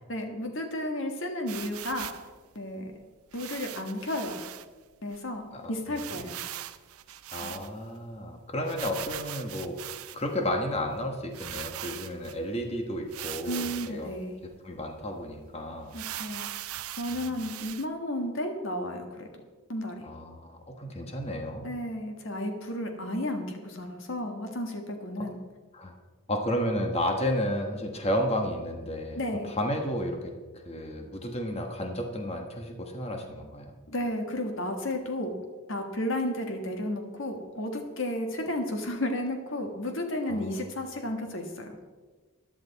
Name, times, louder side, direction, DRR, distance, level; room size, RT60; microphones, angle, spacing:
voice 1, 0.1-2.1 2.5-2.9 3.3-4.4 5.0-6.4 7.4-7.6 13.4-14.4 15.9-16.5 17.0-19.3 19.7-20.0 21.6-25.4 29.1-29.5 33.9-35.4 35.7-41.8, left 1 dB, 55° left, 4 dB, 1.6 m, -33 dB
sound 1, 1.5-2.3 3.3-4.7 5.1-5.2 5.4-5.5 6.0-8.0 8.7-10.4 11.0-11.1 11.3-12.4 13.1-14.0 14.5-14.6 15.0-15.1 15.9-17.9, right 12 dB, 80° right, 0.6 m, -40 dB
voice 2, 5.5-6.2 7.3-14.1 14.4-15.9 17.1-17.4 20.0-21.7 25.2-25.3 25.7-25.9 26.3-30.3 30.6-33.7 40.3-40.6, equal, 25° left, 3 dB, 1.2 m, -32 dB
13.5 x 10.5 x 4.1 m, 1.3 s
head